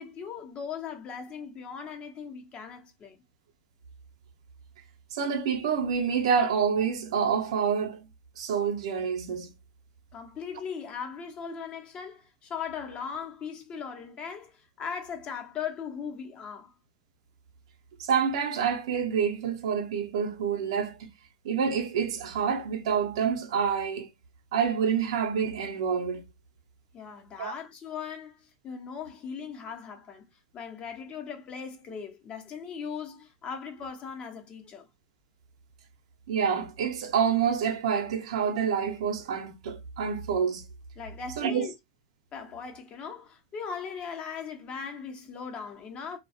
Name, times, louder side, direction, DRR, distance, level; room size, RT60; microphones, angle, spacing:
voice 1, 0.0-3.2 10.1-16.7 26.9-30.3 30.5-34.9 41.0-41.7 42.3-46.2, left 6 dB, 35° left, 0.8 m, -39 dB
voice 2, 5.1-8.0 8.4-9.5 18.0-21.1 21.4-24.1 24.5-26.2 27.4-27.5 36.3-40.7 41.4-41.7, right 7 dB, 75° right, 0.7 m, -27 dB
2.3 x 2.3 x 2.6 m
hypercardioid pair, 100°, 3 cm